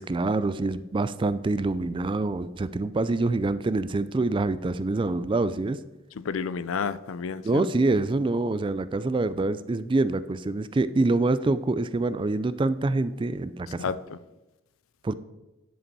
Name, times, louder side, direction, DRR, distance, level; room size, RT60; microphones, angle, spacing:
voice 1, 0.0-5.8 7.4-13.8 15.0-15.1, right 2 dB, 25° right, 0.3 m, -26 dB
voice 2, 6.2-7.7 13.8-14.2, left 6 dB, 80° left, 0.4 m, -31 dB
10.0 x 5.1 x 4.7 m
head